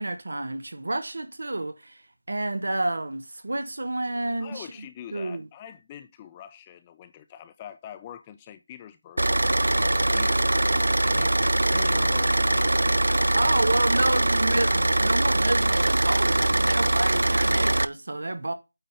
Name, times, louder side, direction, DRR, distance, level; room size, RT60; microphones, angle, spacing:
voice 1, 0.0-2.0 2.3-4.7 5.1-5.5 9.6-9.7 13.3-18.5, right 2 dB, 65° right, 1.3 m, -29 dB
voice 2, 4.4-9.2 9.6-13.6 14.0-14.3, left 10 dB, 10° left, 0.3 m, -44 dB
Car / Idling, 9.2-17.8, right 1 dB, 90° right, 0.4 m, -22 dB
8.8 x 3.6 x 4.1 m
figure-of-eight pair, 175°, 0 cm